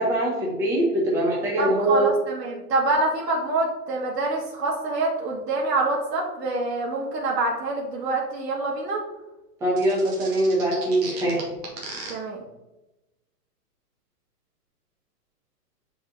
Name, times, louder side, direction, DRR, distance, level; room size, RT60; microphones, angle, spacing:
voice 1, 0.0-2.1 9.6-11.4, right 1 dB, 5° right, -5 dB, 1.1 m, -23 dB
voice 2, 1.6-9.0 12.1-12.4, right 2 dB, 80° right, -2 dB, 2.6 m, -26 dB
sound 1, 9.8-12.1, right 3 dB, 25° right, 1.6 m, -37 dB
8.5 x 5.1 x 4.1 m, 1.0 s
hypercardioid pair, 170°, 48 cm